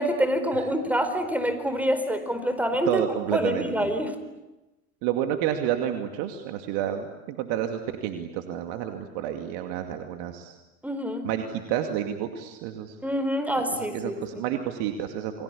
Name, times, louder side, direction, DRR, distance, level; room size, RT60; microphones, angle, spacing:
voice 1, 0.0-3.0 3.3-4.1 10.8-11.3 13.0-14.2, equal, 5° right, 9 dB, 4.6 m, -26 dB
voice 2, 2.9-3.9 5.0-10.6 11.2-13.0 13.6-13.7 13.9-15.4, right 10 dB, 60° right, 5 dB, 2.6 m, -30 dB
29.5 x 23.5 x 8.6 m, 1.0 s
hypercardioid pair, 100°, 43 cm